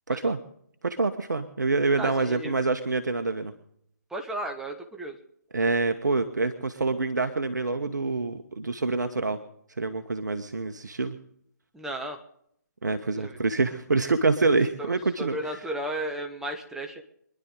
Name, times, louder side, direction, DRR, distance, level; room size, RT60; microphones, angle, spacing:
voice 1, 0.1-0.4 0.8-3.5 5.5-9.4 9.8-11.2 12.8-15.4, right 3 dB, 70° right, 8 dB, 1.2 m, -26 dB
voice 2, 2.0-2.5 4.1-5.2 11.7-12.2 13.1-13.4 14.8-14.9 15.2-17.0, right 1 dB, 5° right, 3 dB, 1.1 m, -34 dB
24.5 x 11.0 x 3.9 m, 0.71 s
figure-of-eight pair, 140°, 10 cm